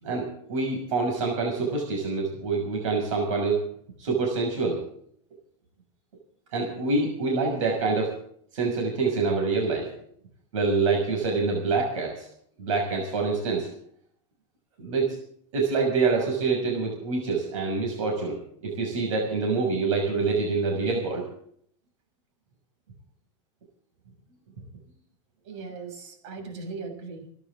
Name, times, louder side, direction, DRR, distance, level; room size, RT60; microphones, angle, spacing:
voice 1, 0.0-3.7 4.0-4.8 6.5-8.1 8.5-9.9 10.5-12.3 12.6-13.7 14.8-15.2 15.5-18.4 18.6-21.3, right 4 dB, 80° right, 0 dB, 6.3 m, -26 dB
voice 2, 25.4-27.3, right 4 dB, 65° right, 3 dB, 6.9 m, -38 dB
29.5 x 12.5 x 3.7 m, 0.64 s
supercardioid pair, 150°, 16 cm